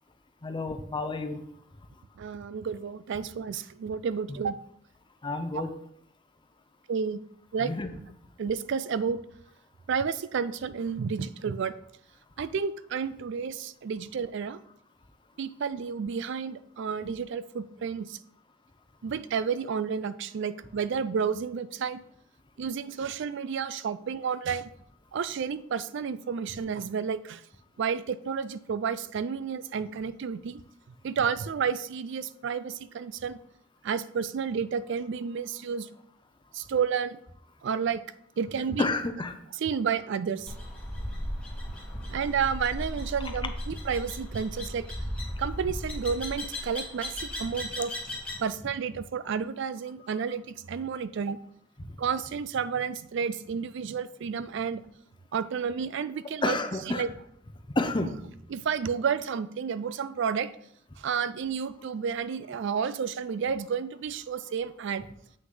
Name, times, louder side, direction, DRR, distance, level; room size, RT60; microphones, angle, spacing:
voice 1, 0.4-1.4 5.2-5.7 7.6-8.0 38.8-39.3 56.4-57.0 57.8-58.1, left 2 dB, 25° left, 8 dB, 0.7 m, -29 dB
voice 2, 2.2-4.5 5.5-5.6 6.9-7.2 7.5-7.7 8.4-9.2 9.9-11.7 12.4-14.6 15.4-18.2 19.0-22.0 22.6-24.7 25.1-27.4 27.8-30.6 31.0-33.4 33.8-35.9 36.5-37.2 37.6-38.0 38.4-38.9 39.6-40.5 42.1-44.8 45.4-47.9 48.4-51.4 52.0-54.8 55.3-56.6 56.9-57.1 58.5-60.5 61.0-65.1, right 6 dB, 65° right, 15 dB, 0.4 m, -31 dB
sound 1, 40.5-48.5, left 1 dB, 5° left, 1.9 m, -36 dB
7.8 x 6.0 x 3.8 m, 0.70 s
head